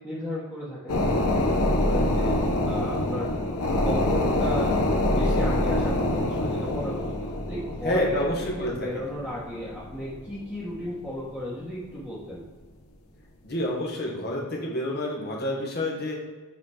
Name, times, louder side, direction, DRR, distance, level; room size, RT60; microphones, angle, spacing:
voice 1, 0.0-3.3 3.6-4.8 5.1-7.1 7.5-8.3 8.6-12.4, left 1 dB, 5° left, -10 dB, 1.3 m, -34 dB
sound 1, 0.9-10.9 11.3-11.4, left 1 dB, 70° left, 0.9 m, -26 dB
voice 2, 7.8-8.9 13.4-16.1, left 1 dB, 45° left, -2 dB, 1.3 m, -28 dB
7.1 x 4.1 x 5.0 m, 1.3 s
head